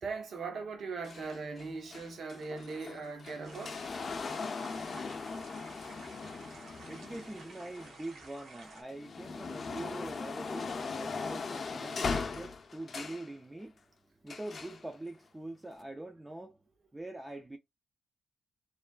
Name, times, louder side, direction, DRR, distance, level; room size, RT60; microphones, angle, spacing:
voice 1, 0.0-3.8, right 4 dB, 70° right, 0.9 m, -39 dB
sound 1, 1.0-8.2 8.7-13.3 14.3-14.8 15.7-15.8, left 4 dB, 50° left, 0.5 m, -39 dB
sound 2, 3.4-8.8, right 3 dB, 85° right, 1.2 m, -52 dB
voice 2, 6.9-13.8 14.2-16.6 16.9-17.6, right 1 dB, 15° right, 0.3 m, -44 dB
3.1 x 2.3 x 2.2 m
wide cardioid pair, 125°, 0 cm